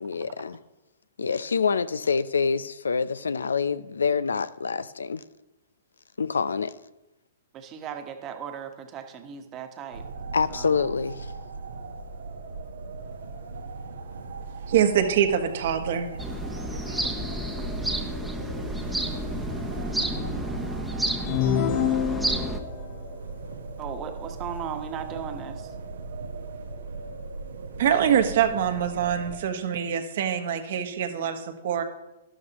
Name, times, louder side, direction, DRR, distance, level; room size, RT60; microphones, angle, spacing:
voice 1, 0.0-0.6 1.2-5.2 6.2-6.7 10.3-11.3, left 5 dB, 85° left, 0.5 m, -26 dB
voice 2, 7.5-10.0 10.5-10.8 23.8-25.7, right 8 dB, 30° right, 1.3 m, -37 dB
sound 1, 9.9-29.4, right 3 dB, 75° right, 1.1 m, -38 dB
voice 3, 14.7-16.1 16.7-17.0 17.5-17.6 27.8-31.8, right 9 dB, 60° right, 1.4 m, -24 dB
sound 2, 16.2-22.6, right 1 dB, 5° right, 1.0 m, -30 dB
sound 3, 21.3-22.8, left 10 dB, 50° left, 0.8 m, -26 dB
12.5 x 12.0 x 3.0 m
hypercardioid pair, 125°, 0 cm